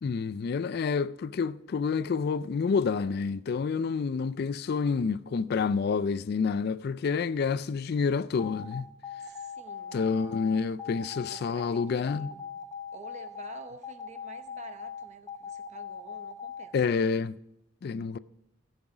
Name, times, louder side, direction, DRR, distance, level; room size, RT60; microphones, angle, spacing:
voice 1, 0.0-8.9 9.9-12.3 16.7-17.3 17.8-18.2, left 5 dB, 50° left, 0.3 m, -28 dB
sound 1, 8.4-16.6, left 7 dB, 15° left, 0.6 m, -40 dB
voice 2, 9.2-10.0 11.2-12.6 12.9-16.9, right 3 dB, 35° right, 0.8 m, -50 dB
14.0 x 6.2 x 4.9 m
head